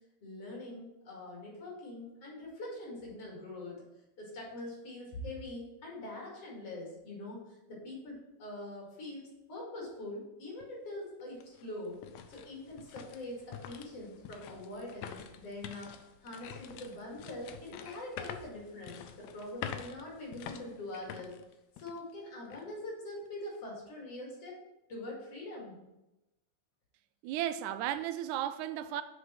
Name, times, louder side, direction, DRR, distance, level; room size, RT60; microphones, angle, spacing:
voice 1, 0.2-3.8 4.2-12.0 12.3-21.3 21.8-24.6 24.9-25.8, left 1 dB, 55° left, -3 dB, 3.1 m, -43 dB
sound 1, 10.6-10.7 11.2-22.1 22.5-22.6 23.2-23.6, left 8 dB, 75° left, 1.8 m, -47 dB
voice 2, 27.2-29.0, right 11 dB, 80° right, 11 dB, 1.9 m, -34 dB
6.4 x 5.1 x 5.7 m, 0.97 s
omnidirectional pair, 3.5 m